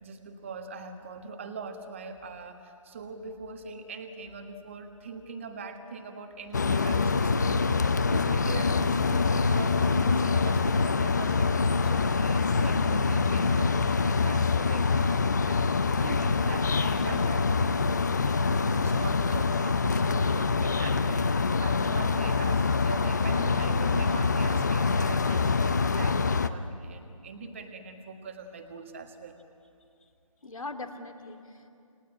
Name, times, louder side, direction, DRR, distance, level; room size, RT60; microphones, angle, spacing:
voice 1, 0.0-17.4 18.7-29.4, right 4 dB, 20° right, 6 dB, 1.5 m, -42 dB
sound 1, 6.5-26.5, left 4 dB, 30° left, 0.7 m, -25 dB
voice 2, 30.4-31.7, left 2 dB, 75° left, 5 dB, 2.8 m, -42 dB
29.5 x 18.5 x 9.1 m, 2.5 s
figure-of-eight pair, 165°, 18 cm